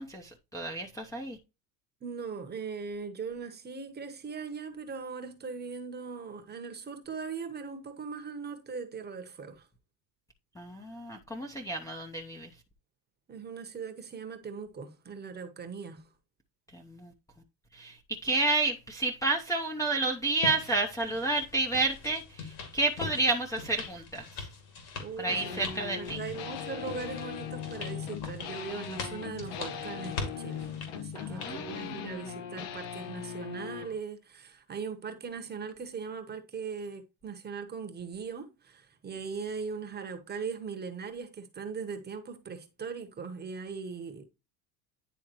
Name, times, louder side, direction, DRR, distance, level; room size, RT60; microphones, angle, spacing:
voice 1, 0.0-1.4 10.6-12.5 16.7-17.1 17.7-24.5 25.2-26.2 31.1-32.0, right 3 dB, 5° left, 0.7 m, -31 dB
voice 2, 2.0-9.7 13.3-16.1 25.0-25.6 25.9-44.2, right 5 dB, 20° right, 1.1 m, -40 dB
sound 1, 20.4-31.5, left 4 dB, 55° left, 2.3 m, -42 dB
sound 2, 25.3-34.0, left 8 dB, 75° left, 1.2 m, -39 dB
10.5 x 3.5 x 3.0 m
supercardioid pair, 125°, 47 cm